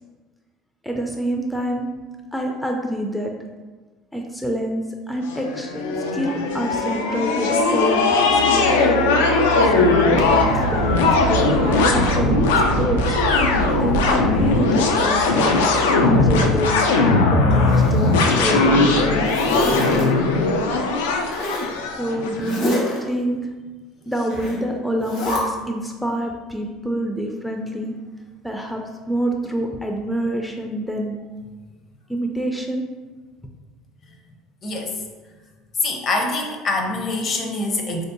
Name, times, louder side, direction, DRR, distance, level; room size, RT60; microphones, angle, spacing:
voice 1, 0.8-1.9 2.3-3.3 4.1-8.7 9.5-13.2 13.8-15.5 16.0-18.1 18.4-19.8 22.0-23.4 24.1-27.9 28.4-31.2 32.1-32.9, equal, ahead, 1 dB, 0.4 m, -26 dB
sound 1, 5.3-22.4, left 3 dB, 90° left, 0.3 m, -19 dB
Explosion, 10.2-16.2, right 4 dB, 75° right, 0.3 m, -28 dB
Zipper (clothing), 17.5-18.5 18.9-20.0 21.3-21.7 22.4-23.0 24.3-24.6 25.0-25.4, left 1 dB, 70° left, 1.0 m, -28 dB
voice 2, 34.6-35.0 35.8-38.0, left 2 dB, 45° left, 2 dB, 0.6 m, -24 dB
3.1 x 2.7 x 2.6 m, 1.3 s
supercardioid pair, 85°, 0 cm